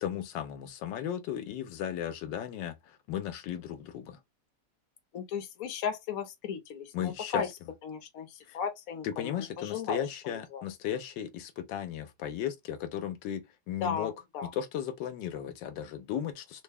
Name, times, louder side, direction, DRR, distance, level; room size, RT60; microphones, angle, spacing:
voice 1, 0.0-4.2 6.9-7.5 8.5-8.6 9.0-14.1 14.4-16.6, left 10 dB, 80° left, 1.3 m, -36 dB
voice 2, 5.1-7.5 7.8-10.6 13.8-14.5, left 6 dB, 60° left, 1.1 m, -36 dB
3.6 x 2.2 x 3.3 m
omnidirectional pair, 2.0 m